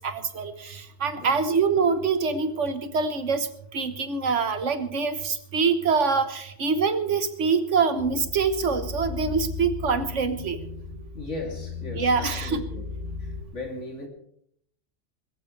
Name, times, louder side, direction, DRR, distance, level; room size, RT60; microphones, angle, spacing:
voice 1, 0.0-3.5 3.7-10.6 11.9-12.6, right 5 dB, 85° right, 10 dB, 1.5 m, -25 dB
sound 1, 8.0-13.4, left 5 dB, 55° right, 2.1 m, -36 dB
voice 2, 11.1-12.8 13.2-14.1, left 2 dB, 80° left, 1 dB, 3.2 m, -37 dB
22.0 x 14.0 x 3.3 m, 0.73 s
omnidirectional pair, 1.2 m